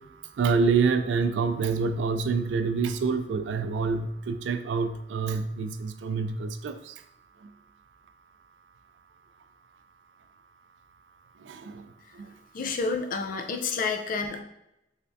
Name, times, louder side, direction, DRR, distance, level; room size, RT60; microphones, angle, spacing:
voice 1, 0.4-6.7 11.5-11.7, right 5 dB, 80° right, 10 dB, 0.3 m, -26 dB
voice 2, 12.5-14.4, left 4 dB, 50° left, 4 dB, 0.4 m, -29 dB
3.4 x 3.3 x 2.6 m, 0.87 s
head